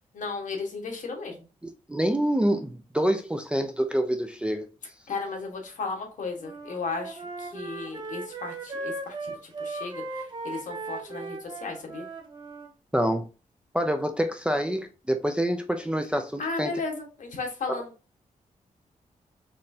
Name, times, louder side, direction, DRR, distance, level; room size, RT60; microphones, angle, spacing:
voice 1, 0.1-1.5 5.1-12.0 16.4-17.9, left 4 dB, 65° left, 1.3 m, -35 dB
voice 2, 1.9-4.7 12.9-13.3 13.7-16.7 17.7-17.8, right 1 dB, 10° right, 0.3 m, -26 dB
Wind instrument woodwind instrument, 6.4-12.7, right 3 dB, 35° right, 0.8 m, -37 dB
4.2 x 3.1 x 2.7 m
wide cardioid pair, 160°, 14 cm